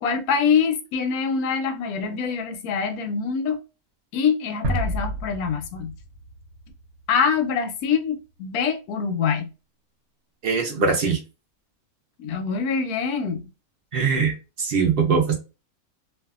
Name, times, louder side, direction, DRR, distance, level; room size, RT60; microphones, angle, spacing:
voice 1, 0.0-3.6 4.1-5.9 7.1-9.5 12.2-13.5, left 6 dB, 90° left, 1.1 m, -24 dB
sound 1, 4.6-7.5, right 1 dB, 90° right, 1.1 m, -30 dB
voice 2, 10.4-11.2 13.9-15.4, right 5 dB, 60° right, 0.6 m, -22 dB
2.6 x 2.3 x 2.3 m
omnidirectional pair, 1.5 m